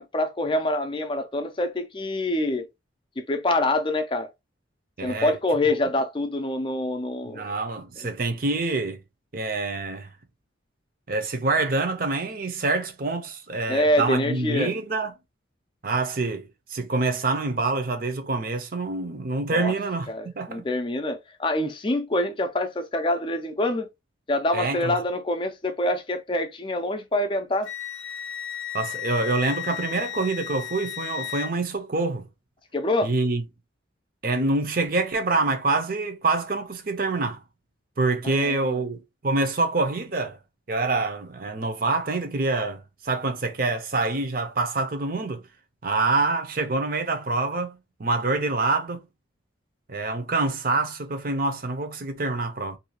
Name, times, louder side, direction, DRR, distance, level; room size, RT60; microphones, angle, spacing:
voice 1, 0.0-2.7 3.2-4.3 5.0-7.5 8.0-8.1 13.7-14.7 19.5-19.7 20.1-23.9 24.3-27.7 32.7-33.1 38.2-38.8, left 1 dB, 25° left, 0.5 m, -26 dB
voice 2, 5.0-5.3 5.7-5.8 7.3-9.0 9.3-10.1 11.1-15.1 15.8-20.6 24.5-25.0 28.7-32.3 33.0-33.4 34.2-37.4 38.0-40.4 40.7-45.4 45.8-49.0 49.9-52.8, right 3 dB, 45° right, 0.6 m, -26 dB
Wind instrument woodwind instrument, 27.6-31.5, left 11 dB, 85° left, 0.6 m, -34 dB
2.7 x 2.4 x 2.9 m
head